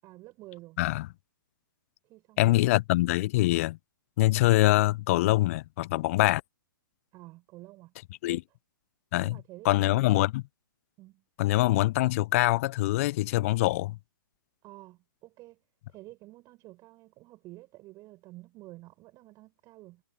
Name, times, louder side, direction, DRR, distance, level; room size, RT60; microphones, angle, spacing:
voice 1, 0.0-0.8 2.0-2.7 7.1-7.9 8.2-8.4 9.2-10.3 11.0-11.2 14.6-15.6 15.9-20.0, right 19 dB, 30° right, 7.6 m, -50 dB
voice 2, 2.4-3.8 4.2-6.4 8.2-8.4 9.1-9.4 9.6-10.4 11.4-14.0, left 18 dB, 40° left, 0.5 m, -24 dB
figure-of-eight pair, 120°, 11 cm